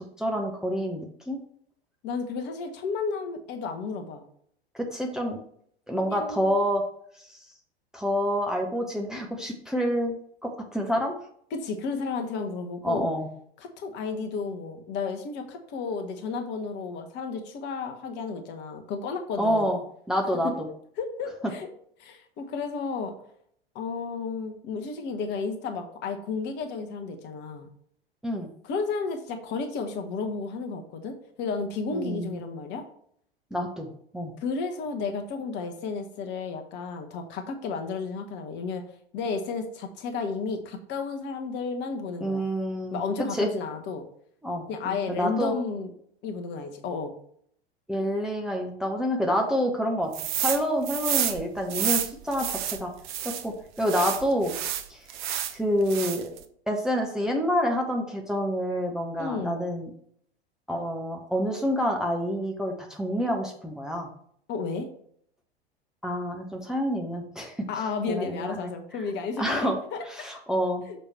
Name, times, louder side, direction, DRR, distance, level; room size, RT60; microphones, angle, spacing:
voice 1, 0.2-1.4 4.7-5.4 5.9-6.8 7.2-7.4 7.9-10.2 10.4-11.2 12.8-13.3 19.4-19.8 20.1-20.7 28.2-28.5 31.9-32.4 33.5-34.3 42.2-43.0 43.3-43.5 44.4-45.6 47.9-50.1 50.4-52.9 53.2-54.5 54.9-55.1 55.5-56.3 56.7-59.9 60.7-64.1 66.0-67.6 68.1-68.7 69.4-69.8 70.1-70.8, equal, ahead, 1 dB, 0.9 m, -28 dB
voice 2, 2.0-4.2 6.0-6.5 11.5-13.1 13.6-19.7 20.4-20.5 21.0-21.7 22.0-23.1 23.7-27.7 28.6-32.8 34.4-38.8 39.1-42.4 42.9-44.0 44.7-45.9 46.2-47.1 59.2-59.6 64.5-64.9 67.7-70.1 70.9-71.0, left 4 dB, 35° left, 6 dB, 1.1 m, -32 dB
sound 1, 50.1-50.6 50.9-53.4 53.8-55.6 55.9-56.4, right 10 dB, 50° right, 0.8 m, -29 dB
6.7 x 4.9 x 4.3 m, 0.64 s
figure-of-eight pair, 85°, 30 cm